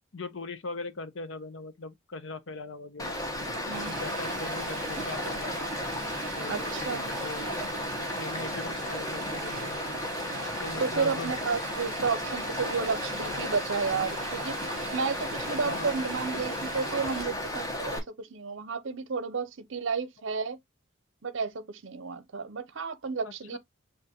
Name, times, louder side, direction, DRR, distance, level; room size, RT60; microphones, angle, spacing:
voice 1, 0.1-3.2 3.8-5.6 6.4-7.7 8.1-9.8 10.6-11.3 15.6-16.0 23.2-23.6, left 3 dB, 65° left, 0.7 m, -40 dB
Stream, 3.0-18.0, left 1 dB, 15° left, 1.1 m, -34 dB
Stream 2, 3.7-17.2, right 4 dB, 40° right, 1.1 m, -41 dB
voice 2, 6.5-7.1 10.8-20.6 21.2-23.6, right 5 dB, 65° right, 0.7 m, -32 dB
6.6 x 2.5 x 2.9 m
head